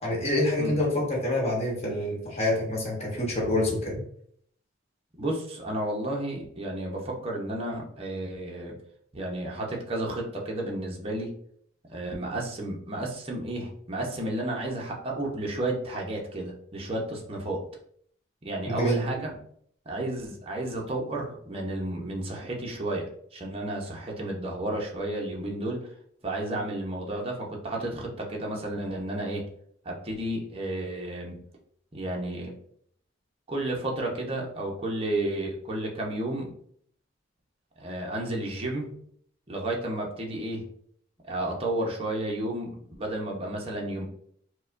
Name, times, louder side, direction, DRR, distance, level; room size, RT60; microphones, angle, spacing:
voice 1, 0.0-4.0 18.7-19.0, left 1 dB, 30° left, -3 dB, 1.1 m, -27 dB
voice 2, 5.2-8.7 9.1-11.3 11.9-17.6 18.4-19.4 19.9-25.9 26.2-29.4 29.8-31.4 31.9-32.5 33.5-36.5 37.8-38.9 39.5-40.6 41.2-44.0, right 1 dB, 30° right, -1 dB, 0.7 m, -32 dB
4.7 x 2.2 x 2.5 m, 0.64 s
head